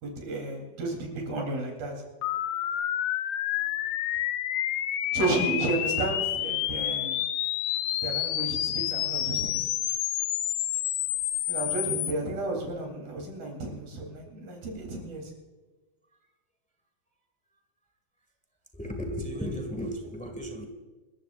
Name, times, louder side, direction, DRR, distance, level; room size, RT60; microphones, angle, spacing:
voice 1, 0.0-1.9 5.1-7.2 8.0-9.7 11.5-15.3, right 2 dB, 80° right, 1 dB, 5.5 m, -32 dB
sound 1, 2.2-12.1, left 12 dB, 80° left, 2.4 m, -29 dB
voice 2, 18.7-20.7, equal, 5° left, 3 dB, 1.0 m, -34 dB
27.5 x 14.5 x 2.6 m, 1.3 s
omnidirectional pair, 4.1 m